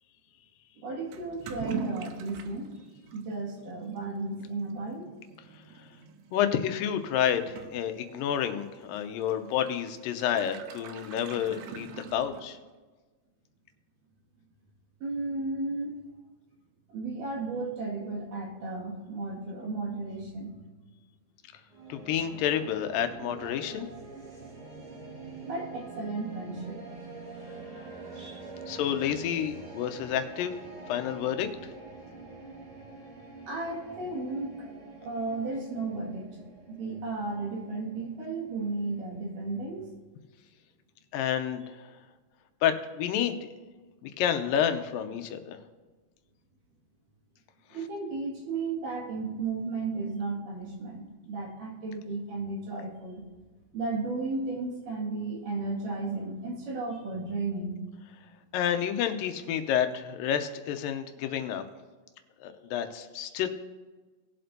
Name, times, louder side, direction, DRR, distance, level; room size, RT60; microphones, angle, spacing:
voice 1, 0.8-2.7 3.1-5.1 15.0-16.0 16.9-20.5 25.4-26.8 28.2-28.5 33.5-34.7 35.0-36.3 36.7-39.9 47.7-53.3 53.7-57.8, right 3 dB, 70° right, -4 dB, 3.6 m, -34 dB
Toilet flush / Liquid, 1.1-12.8, right 6 dB, 85° right, 1.5 m, -44 dB
voice 2, 6.3-12.6 21.9-23.9 28.7-30.6 30.9-31.5 41.1-41.9 42.6-43.5 44.0-45.6 58.5-61.6 62.4-63.5, left 9 dB, 90° left, 8 dB, 2.4 m, -29 dB
sound 1, 21.7-39.9, right 3 dB, 35° right, 2.2 m, -46 dB
19.5 x 7.7 x 2.7 m, 1.3 s
omnidirectional pair, 4.0 m